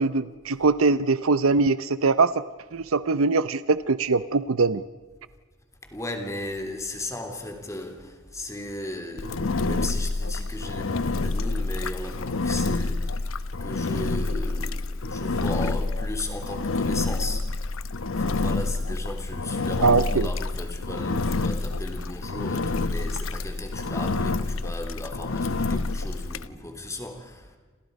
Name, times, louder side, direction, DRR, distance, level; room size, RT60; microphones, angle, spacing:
voice 1, 0.0-2.3 2.7-4.8 19.8-20.3, right 4 dB, 70° right, 0.7 m, -22 dB
voice 2, 5.9-13.2 13.6-17.5 18.2-27.5, left 1 dB, 15° left, 3.2 m, -36 dB
Engine, 9.2-26.5, left 3 dB, 65° left, 0.9 m, -28 dB
29.5 x 27.0 x 5.3 m
head